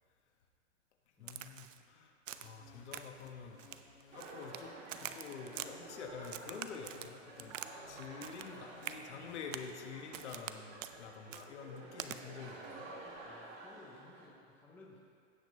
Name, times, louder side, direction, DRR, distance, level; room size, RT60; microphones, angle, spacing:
voice 1, 1.2-3.6 4.1-12.9, left 6 dB, 60° left, 3 dB, 1.3 m, -48 dB
Crack, 1.3-1.8 2.3-2.6 2.9-3.3 3.6-4.6 4.9-5.7 6.2-7.7 8.0-8.5 8.8-9.0 9.5-9.7 10.1-10.5 10.8-11.0 11.3-11.5 12.0-12.2, right 11 dB, 75° right, 0.6 m, -45 dB
sound 1, 2.3-10.5, left 4 dB, 80° left, 2.1 m, -61 dB
sound 2, 4.1-14.3, right 2 dB, 40° right, 2.1 m, -51 dB
voice 2, 13.2-15.0, left 3 dB, 5° left, -4 dB, 0.6 m, -58 dB
16.5 x 6.0 x 3.2 m, 2.3 s
hypercardioid pair, 150°, 39 cm